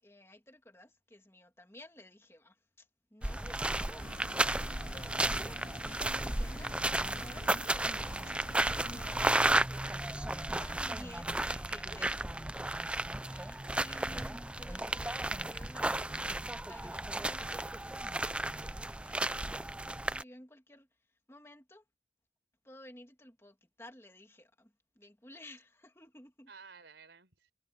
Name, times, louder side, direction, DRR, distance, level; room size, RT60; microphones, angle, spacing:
voice 1, 0.0-5.6 5.9-6.9 7.2-8.4 8.7-12.5 13.2-21.8 22.6-26.5, left 1 dB, 15° left, 2.2 m, -55 dB
sound 1, 3.2-20.2, right 1 dB, 5° right, 0.4 m, -33 dB
sound 2, 4.0-9.3, left 2 dB, 50° left, 1.7 m, -49 dB
voice 2, 9.4-10.2 26.5-27.5, right 5 dB, 85° right, 4.2 m, -54 dB
head